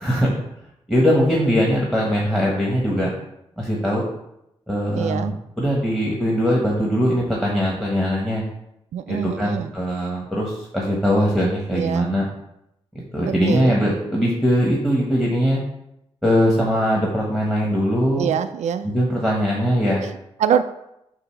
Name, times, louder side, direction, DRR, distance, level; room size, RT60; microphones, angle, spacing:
voice 1, 0.0-0.4 0.9-3.1 3.6-4.0 4.7-8.4 9.1-12.2 13.1-15.6 16.2-18.3 18.8-20.0, equal, 5° left, -4 dB, 1.3 m, -21 dB
voice 2, 4.9-5.3 8.9-9.7 11.7-12.1 13.2-13.8 18.2-18.9 20.0-20.6, right 8 dB, 85° right, 11 dB, 0.4 m, -24 dB
7.8 x 2.8 x 5.7 m, 0.82 s
cardioid pair, 95°, 12 cm